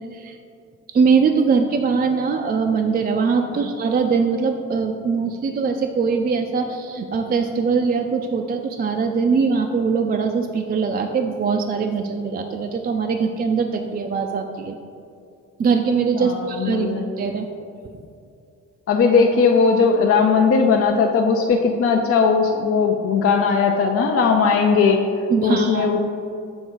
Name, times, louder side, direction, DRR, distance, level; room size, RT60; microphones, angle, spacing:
voice 1, 0.9-14.8 15.6-17.5 25.3-25.9, right 5 dB, 30° right, 4 dB, 0.4 m, -21 dB
voice 2, 16.2-17.0 18.9-25.0 25.4-26.0, left 5 dB, 45° left, 2 dB, 0.5 m, -18 dB
6.4 x 3.2 x 4.6 m, 2.5 s
cardioid pair, 75°, 31 cm